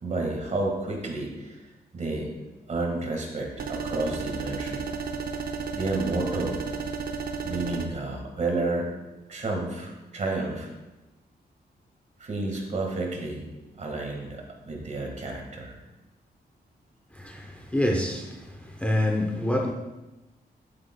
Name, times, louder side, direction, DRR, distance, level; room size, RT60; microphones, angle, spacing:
voice 1, 0.0-1.6 1.9-2.3 2.7-4.8 5.7-6.6 7.4-8.9 9.3-10.7 12.2-13.5 13.7-15.8, right 2 dB, 45° right, 1 dB, 1.8 m, -30 dB
sound 1, 3.6-7.9, right 5 dB, 60° right, 0.7 m, -33 dB
voice 2, 17.2-18.3 18.8-19.7, left 1 dB, 10° left, 1 dB, 0.6 m, -26 dB
13.0 x 8.1 x 2.3 m, 1.1 s
wide cardioid pair, 160°, 17 cm